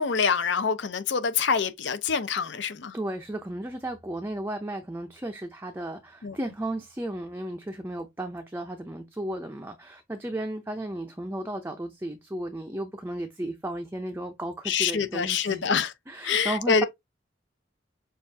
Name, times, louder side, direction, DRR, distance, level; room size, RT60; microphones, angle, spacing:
voice 1, 0.0-2.9 6.2-6.3 14.7-15.9 16.2-16.8, left 6 dB, 70° left, 0.6 m, -26 dB
voice 2, 2.9-15.6 16.1-16.8, right 1 dB, 10° right, 0.5 m, -34 dB
6.5 x 2.4 x 2.7 m
head